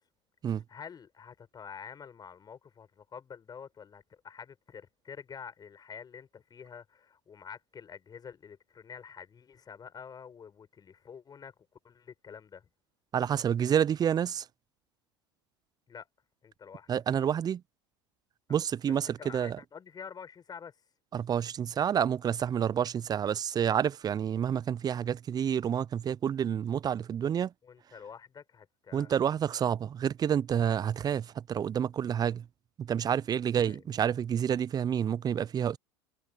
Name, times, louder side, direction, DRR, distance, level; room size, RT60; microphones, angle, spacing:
voice 1, 0.7-11.5 11.8-12.7 15.9-16.1 16.4-16.9 18.5-18.6 18.9-20.8 27.6-29.2 33.6-33.8, left 7 dB, 30° left, 7.3 m, -48 dB
voice 2, 13.1-14.4 16.9-17.6 18.5-19.6 21.1-27.5 28.9-32.4 32.8-35.8, right 8 dB, 30° right, 0.6 m, -29 dB
hypercardioid pair, 80°, 13 cm